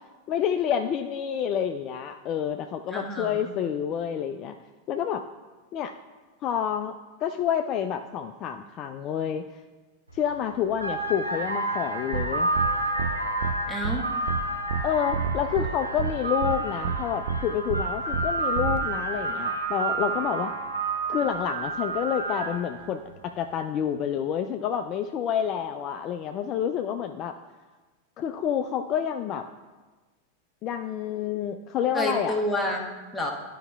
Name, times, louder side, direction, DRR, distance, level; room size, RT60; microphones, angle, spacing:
voice 1, 0.3-4.5 4.9-5.2 5.7-5.9 6.4-6.9 7.2-9.4 10.1-12.5 14.8-20.5 21.1-27.3 28.2-29.5 30.6-32.4, left 9 dB, 35° left, 6 dB, 0.3 m, -28 dB
voice 2, 2.9-3.6 13.7-14.1 31.9-33.3, left 1 dB, 5° left, -1 dB, 1.2 m, -29 dB
sound 1, 10.1-10.3 10.7-22.8, right 2 dB, 80° right, 0.8 m, -30 dB
sound 2, 12.1-12.3 12.5-12.7 13.0-13.1 13.4-13.5 13.8-14.0 14.3-14.4 14.7-14.8 15.1-15.7 16.0-16.1 16.4-16.5 16.8-17.0 17.3-17.4 17.7-17.8 18.1-18.3 18.5-18.8, right 6 dB, 55° right, 0.4 m, -28 dB
12.0 x 5.3 x 2.3 m, 1.3 s
figure-of-eight pair, 90°, 0 cm